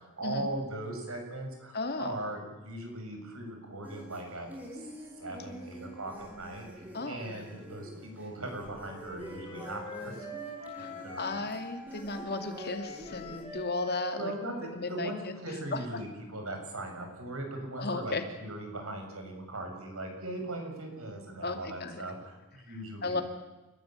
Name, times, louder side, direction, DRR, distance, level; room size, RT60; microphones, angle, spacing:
voice 1, 0.0-4.9 5.2-10.3 10.7-11.5 14.1-23.2, right 1 dB, 75° right, 3 dB, 7.0 m, -39 dB
voice 2, 1.7-2.2 6.9-7.2 10.8-10.9 11.2-14.3 14.6-15.3 15.7-15.8 17.8-18.2 21.4-22.0 23.0-23.2, left 3 dB, 50° left, 6 dB, 2.6 m, -34 dB
sound 1, 3.8-13.4, equal, 10° right, 6.3 m, -47 dB
Wind instrument woodwind instrument, 8.3-15.7, left 2 dB, 25° left, 4.7 m, -45 dB
29.5 x 15.0 x 9.2 m, 1.1 s
head